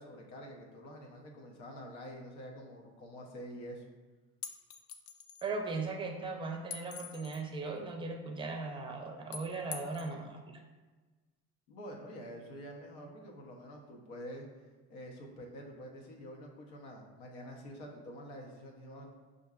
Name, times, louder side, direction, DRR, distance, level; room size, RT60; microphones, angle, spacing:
voice 1, 0.0-3.8 11.7-14.5 14.9-19.1, equal, 90° left, 0 dB, 0.8 m, -47 dB
sound 1, 4.4-5.5 6.7-7.5 9.3-10.1, left 7 dB, 45° left, 0.4 m, -44 dB
voice 2, 5.4-10.6, right 3 dB, 15° right, 3 dB, 0.5 m, -38 dB
5.3 x 2.6 x 2.4 m, 1.3 s
supercardioid pair, 95°, 32 cm